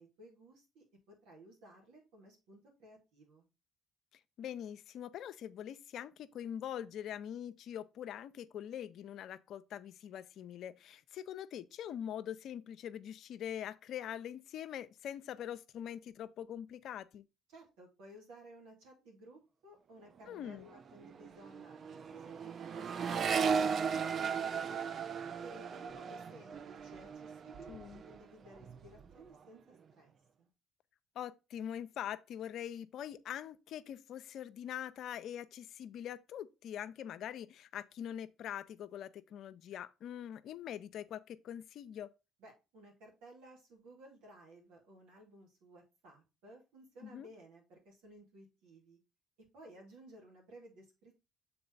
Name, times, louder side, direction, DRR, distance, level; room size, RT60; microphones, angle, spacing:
voice 1, 0.0-3.5 17.5-24.9 25.4-27.7 28.1-30.5 42.4-49.0 49.5-51.2, right 1 dB, 80° right, 2.6 m, -57 dB
voice 2, 4.4-17.2 20.3-20.7 27.7-28.0 31.2-42.1 47.0-47.3, left 10 dB, 65° left, 0.5 m, -43 dB
Accelerating revving vroom, 20.2-20.4 20.7-28.2 28.5-29.1, right 6 dB, 50° right, 0.5 m, -37 dB
6.8 x 4.1 x 3.9 m
supercardioid pair, 75°, 0 cm